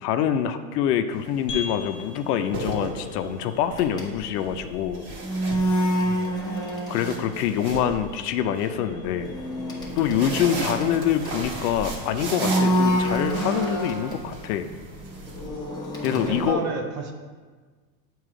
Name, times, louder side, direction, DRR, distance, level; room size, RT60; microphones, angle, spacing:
voice 1, 0.0-5.0 6.9-9.3 10.0-14.7 16.0-16.6, left 9 dB, 70° left, 9 dB, 0.6 m, -25 dB
sound 1, 1.1-1.4 2.3-3.5 4.9-6.2 6.6-8.7 9.8-15.5, right 2 dB, 55° right, 1.7 m, -35 dB
sound 2, 1.5-16.1, left 5 dB, 25° left, 0.4 m, -46 dB
sound 3, 3.7-7.4 7.6-8.0 8.8-11.9 12.4-14.2 14.9-16.5, equal, 10° left, 0.9 m, -27 dB
voice 2, 6.1-6.7 16.1-17.1, right 5 dB, 35° right, 4 dB, 0.5 m, -33 dB
7.4 x 3.0 x 4.8 m, 1.4 s
supercardioid pair, 130°, 49 cm